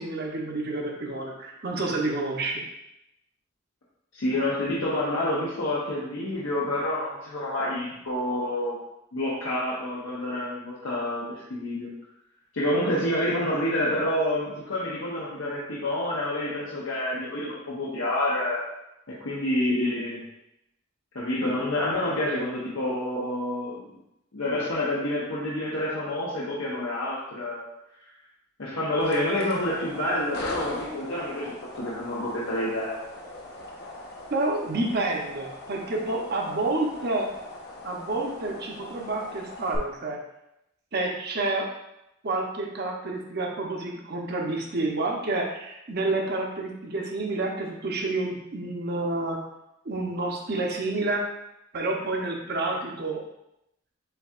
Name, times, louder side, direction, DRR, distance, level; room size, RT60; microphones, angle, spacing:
voice 1, 0.0-2.6 34.3-37.3 37.8-40.2 40.9-41.7 42.2-49.4 49.8-51.2 51.7-53.2, right 2 dB, 55° right, 1 dB, 0.8 m, -29 dB
voice 2, 4.2-8.8 9.1-11.9 12.5-18.6 19.1-20.2 21.1-23.9 24.3-27.7 28.6-33.0, left 1 dB, 85° left, -7 dB, 0.9 m, -28 dB
sound 1, 29.0-39.8, left 2 dB, 55° left, 1.0 m, -40 dB
7.8 x 2.8 x 2.4 m, 0.85 s
head